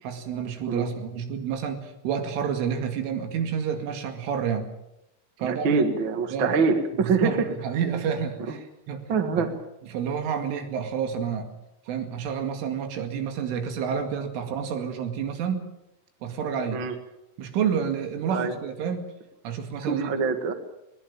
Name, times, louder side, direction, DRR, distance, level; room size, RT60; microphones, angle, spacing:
voice 1, 0.0-4.7 5.4-5.8 6.3-6.5 6.9-9.0 9.4-9.5 9.9-11.5 11.9-15.7 16.2-16.8 17.4-19.1 19.4-20.1, right 7 dB, 80° right, 6 dB, 4.7 m, -29 dB
voice 2, 5.4-7.5 8.5-8.6 9.1-9.5 16.7-16.9 18.3-18.5 19.8-20.5, right 5 dB, 60° right, 7 dB, 1.2 m, -24 dB
22.0 x 19.5 x 7.2 m, 0.86 s
omnidirectional pair, 5.6 m